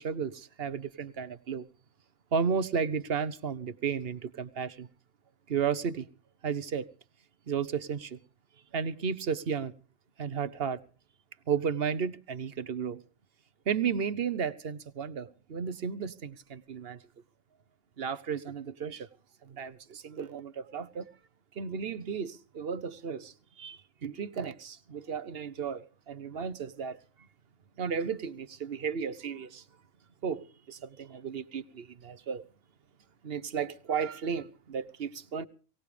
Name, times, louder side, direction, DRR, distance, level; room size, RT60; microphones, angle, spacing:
voice 1, 0.0-1.7 2.3-4.9 5.5-6.1 6.4-6.9 7.5-8.2 8.7-9.7 10.2-10.8 11.5-13.0 13.7-17.0 18.0-19.1 19.4-21.1 21.5-27.0 27.8-29.6 30.2-32.4 33.2-35.5, right 6 dB, 55° right, 1.2 m, -33 dB
23.0 x 18.0 x 3.4 m
omnidirectional pair, 1.3 m